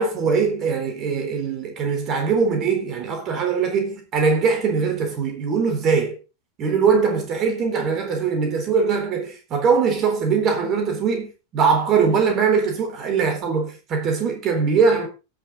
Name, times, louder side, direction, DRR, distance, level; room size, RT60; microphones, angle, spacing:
voice 1, 0.0-6.2 6.6-15.1, right 5 dB, 35° right, 4.0 m, -21 dB
17.0 x 6.3 x 4.1 m
figure-of-eight pair, 90°, 0 cm